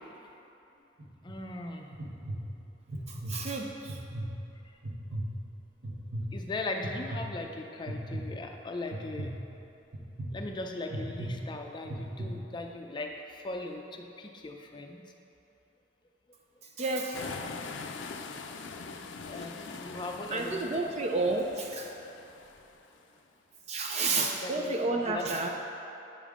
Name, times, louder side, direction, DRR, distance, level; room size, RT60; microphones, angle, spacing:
sound 1, 1.0-1.4 1.9-2.4 2.9-3.3 3.8-4.3 4.8-5.3 5.8-6.3 6.8-7.2 7.9-8.2 8.9-9.3 9.9-10.3 10.9-11.3 11.8-12.3, right 1 dB, 70° right, 1.2 m, -36 dB
voice 1, 1.2-1.9 6.3-9.3 10.3-15.0 19.3-21.0 24.4-25.3, left 2 dB, 25° left, 3 dB, 0.5 m, -39 dB
voice 2, 3.1-4.0 16.8-17.2 20.3-21.9 23.7-25.5, right 3 dB, 35° right, 2 dB, 0.3 m, -31 dB
sound 2, 17.1-23.0, left 4 dB, 80° left, 0.4 m, -42 dB
8.4 x 5.3 x 3.6 m, 2.8 s
head